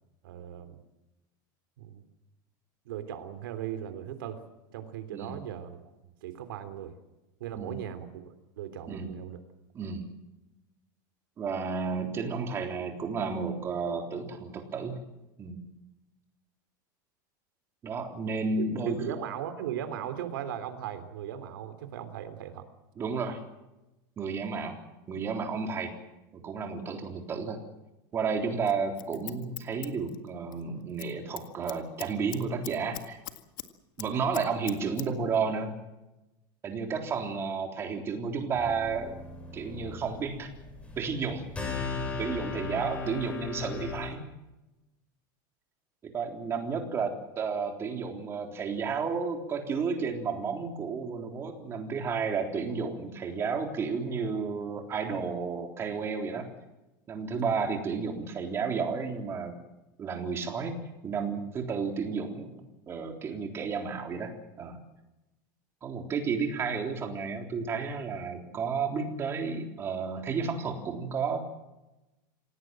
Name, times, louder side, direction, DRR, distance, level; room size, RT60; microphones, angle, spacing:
voice 1, 0.2-0.8 1.8-2.0 2.9-4.4 4.7-5.8 6.2-7.0 7.4-9.4 18.6-22.7, right 10 dB, 85° right, 9 dB, 3.4 m, -38 dB
voice 2, 11.4-15.0 15.4-15.6 17.8-19.0 23.0-23.4 24.2-24.8 25.1-25.9 26.4-27.6 28.1-33.2 34.0-35.7 36.6-39.2 39.5-40.5 41.0-41.4 42.2-44.2 46.1-56.5 57.1-59.6 60.0-60.7 61.0-64.3 64.6-64.8 65.8-71.4, right 5 dB, 25° right, 3 dB, 3.7 m, -32 dB
Scissors, 28.7-30.6 30.9-31.1 31.4-33.7 34.0-35.1 35.3-35.4, left 16 dB, 75° left, 1.9 m, -41 dB
sound 1, 38.5-44.1, left 4 dB, 10° left, 7.1 m, -37 dB
26.5 x 17.5 x 7.7 m, 0.98 s
supercardioid pair, 160°, 11 cm